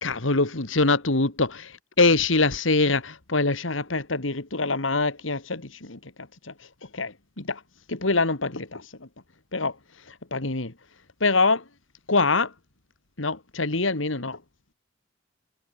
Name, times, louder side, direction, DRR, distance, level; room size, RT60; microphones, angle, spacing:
voice 1, 0.0-1.7 2.0-6.0 6.5-6.6 6.9-7.6 7.9-9.1 9.5-9.7 10.3-10.7 11.2-11.6 12.1-12.5 13.2-14.4, left 3 dB, 85° left, 2.3 m, -24 dB
head